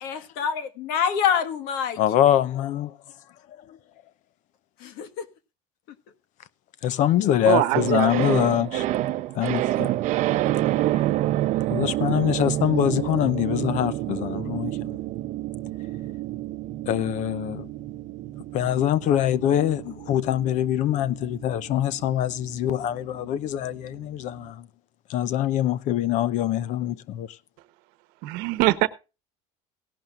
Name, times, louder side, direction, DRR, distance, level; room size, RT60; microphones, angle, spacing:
voice 1, 0.0-2.0 4.8-5.3, left 8 dB, 70° left, 1.7 m, -26 dB
voice 2, 2.0-2.9 3.7-3.8 6.8-8.9 9.4-9.9 11.7-15.0 16.9-17.7 18.5-24.7 25.1-27.3, left 11 dB, 50° left, 0.7 m, -24 dB
voice 3, 7.5-8.3 28.2-28.9, right 18 dB, 70° right, 1.0 m, -23 dB
sound 1, 7.7-24.1 24.4-24.5, right 14 dB, 50° right, 0.8 m, -28 dB
17.5 x 11.5 x 2.5 m
cardioid pair, 140°, 16 cm